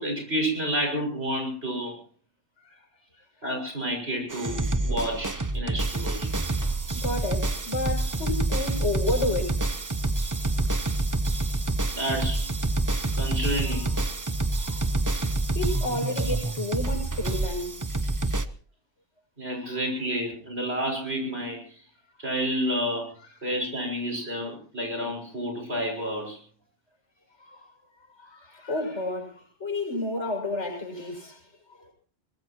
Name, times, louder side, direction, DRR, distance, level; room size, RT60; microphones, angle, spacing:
voice 1, 0.0-2.0 3.4-6.3 11.9-12.4 13.2-14.0 19.4-21.6 22.2-23.1 23.4-26.4, equal, 60° right, 6.4 m, -30 dB
sound 1, 4.3-18.4, right 2 dB, 20° right, 0.7 m, -27 dB
voice 2, 6.9-9.6 14.5-14.8 15.5-17.8 19.5-19.8 27.4-27.7 28.2-31.4 31.8-31.9, left 2 dB, 85° left, 6.6 m, -31 dB
23.0 x 19.5 x 3.0 m
omnidirectional pair, 1.2 m